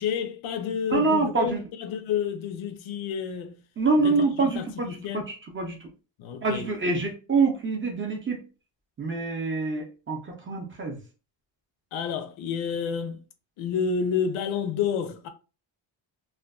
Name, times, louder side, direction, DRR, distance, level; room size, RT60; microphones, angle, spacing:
voice 1, 0.0-3.5 4.0-5.3 6.2-6.7 11.9-13.2 13.6-15.3, left 7 dB, 80° left, 0.6 m, -30 dB
voice 2, 0.9-1.6 3.8-5.0 5.3-5.9 6.4-8.4 9.0-11.0, right 3 dB, 25° right, 0.5 m, -26 dB
2.5 x 2.2 x 2.3 m
cardioid pair, 135°, 47 cm